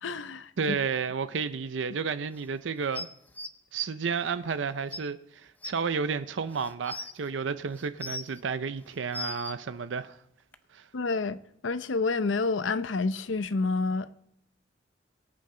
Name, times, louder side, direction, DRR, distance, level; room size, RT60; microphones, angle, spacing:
voice 1, 0.0-0.8 10.9-11.4 11.6-14.1, left 3 dB, 85° left, 0.7 m, -29 dB
voice 2, 0.6-3.1 3.7-10.2 10.7-10.9, right 5 dB, 75° right, 0.5 m, -31 dB
sound 1, 2.9-3.5 4.5-4.6 4.9-5.0 5.6-5.7 6.5-7.1 7.8-8.4 8.9-9.5 10.5-10.6, left 2 dB, 10° left, 0.6 m, -37 dB
23.0 x 8.6 x 3.8 m
head